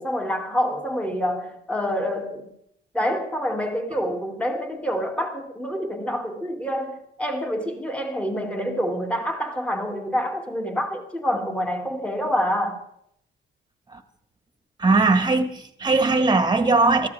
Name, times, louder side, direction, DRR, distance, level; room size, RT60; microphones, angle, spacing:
voice 1, 0.0-2.4 2.9-12.8, equal, 5° left, 2.5 m, -27 dB
voice 2, 14.8-17.1, right 3 dB, 20° right, 1.6 m, -19 dB
19.0 x 14.0 x 3.5 m
cardioid pair, 90°, 20 cm